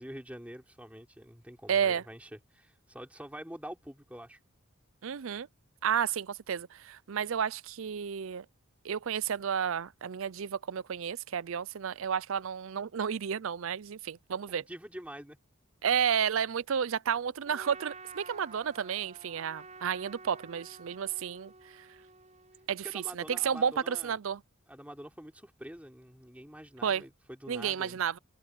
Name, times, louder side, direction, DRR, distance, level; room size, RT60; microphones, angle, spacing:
voice 1, 0.0-4.4 14.5-15.4 22.8-24.2 24.7-28.0, equal, 5° right, 3.7 m, -46 dB
voice 2, 1.7-2.0 5.0-5.5 5.8-8.5 8.8-14.6 15.8-21.9 22.7-24.4 26.8-27.0 27.5-28.2, right 7 dB, 70° right, 0.5 m, -32 dB
Trumpet, 17.4-22.7, right 4 dB, 30° right, 7.3 m, -50 dB
head